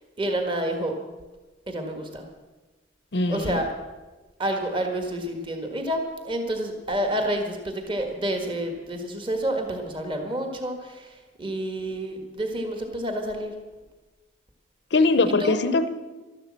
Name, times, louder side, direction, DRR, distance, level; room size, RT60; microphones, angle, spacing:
voice 1, 0.2-0.9 1.7-2.2 3.3-3.7 4.4-13.5 15.4-15.6, right 1 dB, 25° right, 4 dB, 1.7 m, -29 dB
voice 2, 3.1-3.6 14.9-15.9, left 3 dB, 60° left, 12 dB, 0.7 m, -21 dB
12.5 x 12.0 x 7.4 m, 1.2 s
head